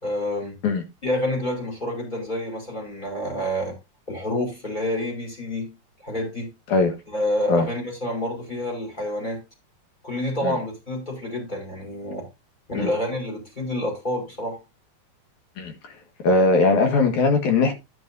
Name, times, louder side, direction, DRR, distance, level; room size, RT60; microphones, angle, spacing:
voice 1, 0.0-0.6 1.0-3.7 4.1-5.7 6.0-6.5 7.1-9.4 10.0-12.2 12.7-14.6, left 1 dB, 15° left, 4.9 m, -28 dB
voice 2, 16.2-17.7, left 3 dB, 85° left, 3.1 m, -19 dB
10.5 x 10.0 x 2.6 m
omnidirectional pair, 3.3 m